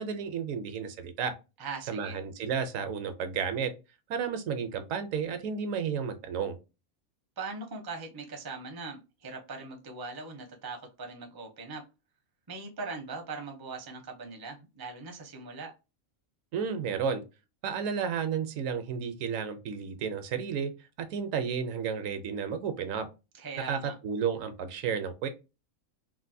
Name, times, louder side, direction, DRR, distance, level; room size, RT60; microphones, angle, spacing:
voice 1, 0.0-1.3 1.9-3.7 4.1-6.6 16.5-17.2 17.6-20.7 21.0-23.1 23.7-25.3, right 6 dB, 75° right, 9 dB, 0.9 m, -32 dB
voice 2, 1.6-2.2 7.4-11.8 12.5-15.7 23.3-24.0, right 4 dB, 30° right, 3 dB, 0.4 m, -40 dB
3.2 x 2.4 x 2.6 m, 0.28 s
omnidirectional pair, 1.4 m